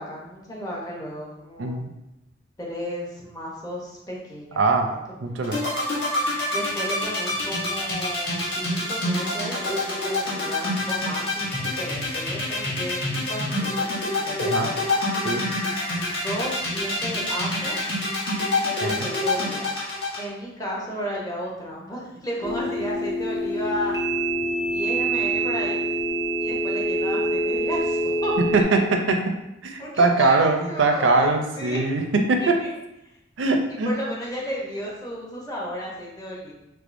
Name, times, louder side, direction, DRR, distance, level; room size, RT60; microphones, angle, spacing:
voice 1, 0.0-1.8 2.6-4.6 4.9-5.0 6.5-11.5 11.8-13.9 14.1-14.6 16.1-17.8 18.7-19.7 20.2-23.9 24.7-25.8 26.4-28.3 29.8-31.3 31.6-31.8 32.4-32.7 33.0-33.1 33.8-36.5, equal, 20° left, -4 dB, 0.7 m, -33 dB
voice 2, 1.6-1.9 4.6-4.9 5.2-5.6 14.5-14.7 15.2-15.4 18.8-18.9 28.5-29.2 29.6-32.6 33.4-33.9, right 3 dB, 85° right, 4 dB, 0.5 m, -21 dB
sound 1, 5.4-20.2, left 2 dB, 60° left, 1.1 m, -26 dB
sound 2, 22.4-28.6, right 1 dB, 20° right, 0.5 m, -25 dB
3.4 x 3.2 x 2.5 m, 0.89 s
head